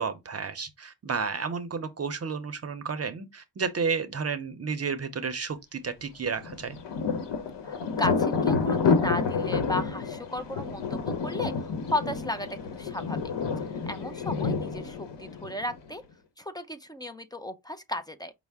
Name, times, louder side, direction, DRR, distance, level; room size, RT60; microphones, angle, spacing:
voice 1, 0.0-6.8, right 5 dB, 35° right, 0.6 m, -32 dB
Thunder, 6.4-15.9, left 5 dB, 85° left, 1.0 m, -29 dB
voice 2, 7.6-13.2 13.9-16.0 16.4-18.3, left 1 dB, 10° left, 0.4 m, -35 dB
5.3 x 2.1 x 3.4 m
wide cardioid pair, 115°, 41 cm